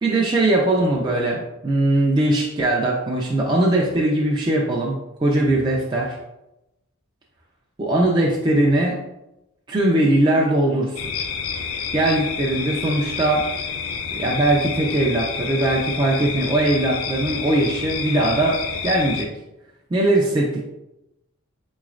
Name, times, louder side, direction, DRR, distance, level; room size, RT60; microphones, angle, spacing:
voice 1, 0.0-6.2 7.8-9.0 9.7-11.0 11.9-13.5 14.1-19.3 19.9-20.7, right 1 dB, 20° right, -3 dB, 0.3 m, -20 dB
sound 1, 11.0-19.3, left 6 dB, 85° left, 0.4 m, -29 dB
4.0 x 3.0 x 2.4 m, 0.92 s
head